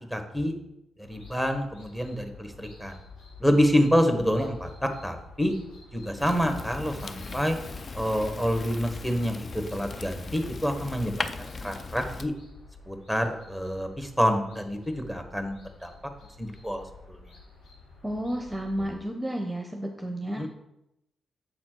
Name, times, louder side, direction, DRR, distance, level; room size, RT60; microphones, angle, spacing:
voice 1, 0.1-0.5 1.0-3.0 3.4-5.5 5.9-7.6 7.9-12.3 12.9-15.9 16.4-17.2 20.4-20.5, equal, 10° left, 6 dB, 1.2 m, -27 dB
sound 1, 1.0-18.9, left 3 dB, 85° left, 2.0 m, -50 dB
Fire, 6.2-12.3, left 4 dB, 45° left, 0.5 m, -38 dB
voice 2, 18.0-20.5, equal, 10° right, 3 dB, 0.9 m, -32 dB
6.7 x 4.2 x 4.6 m, 0.86 s
supercardioid pair, 50°, 0 cm